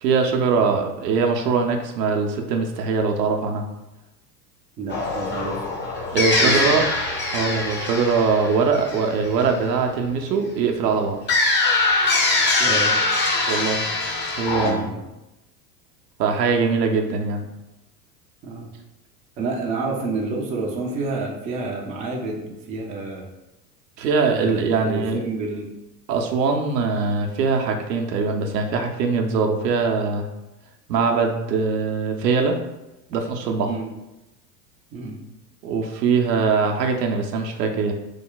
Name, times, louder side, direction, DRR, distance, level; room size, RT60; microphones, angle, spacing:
voice 1, 0.0-3.6 6.1-6.8 7.3-11.2 13.5-13.8 14.4-14.9 16.2-17.5 24.0-25.2 26.1-30.3 30.9-32.6 33.1-33.7 35.6-37.9, right 5 dB, 75° right, 3 dB, 0.7 m, -22 dB
voice 2, 4.8-5.6 6.4-6.5 12.6-12.9 14.4-15.0 18.4-18.7 19.4-23.3 24.3-25.7 33.6-33.9 34.9-35.2, right 3 dB, 20° right, -1 dB, 0.3 m, -29 dB
sound 1, 4.9-9.7 11.3-14.7, left 2 dB, 25° left, 0.6 m, -22 dB
3.2 x 2.2 x 3.7 m, 0.96 s
hypercardioid pair, 90°, 49 cm